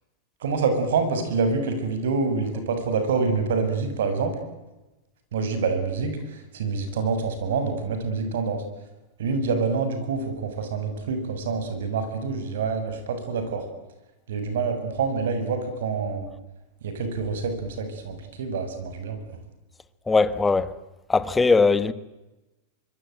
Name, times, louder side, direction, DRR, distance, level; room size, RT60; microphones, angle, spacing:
voice 1, 0.4-4.3 5.3-8.6 9.2-13.7 14.3-16.3 16.8-19.4, right 4 dB, 90° right, 7.1 m, -26 dB
voice 2, 20.1-20.7 21.1-21.9, left 4 dB, 10° left, 1.1 m, -19 dB
24.5 x 23.5 x 9.4 m
supercardioid pair, 165°, 0 cm